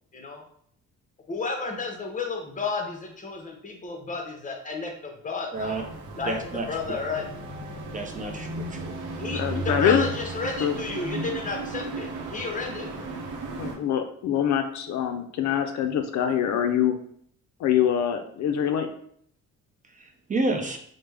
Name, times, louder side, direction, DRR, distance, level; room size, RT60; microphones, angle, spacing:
voice 1, 0.1-0.4 1.3-5.8 6.2-6.4 6.7-7.2 9.2-12.9, left 4 dB, 25° left, 2 dB, 0.7 m, -32 dB
voice 2, 5.5-5.8 6.3-6.7 7.9-9.0 19.9-20.8, right 2 dB, 25° right, 3 dB, 0.5 m, -30 dB
sound 1, 5.6-13.8, right 3 dB, 80° right, 0.7 m, -35 dB
voice 3, 9.2-10.0 10.6-10.8 13.6-16.9 17.6-18.9, left 9 dB, 65° left, 7 dB, 0.4 m, -24 dB
3.3 x 2.1 x 3.3 m, 0.65 s
cardioid pair, 90°, 30 cm